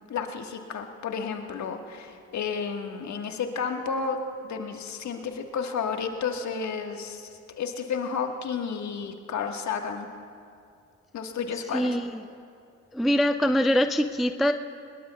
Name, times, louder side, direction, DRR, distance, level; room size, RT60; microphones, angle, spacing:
voice 1, 0.1-4.2 4.4-7.3 7.6-10.1 11.1-11.9, left 6 dB, 45° left, 4 dB, 1.6 m, -31 dB
voice 2, 11.7-12.2 12.9-14.5, equal, ahead, 9 dB, 0.4 m, -23 dB
23.0 x 21.0 x 2.3 m, 2.5 s
hypercardioid pair, 55°, 38 cm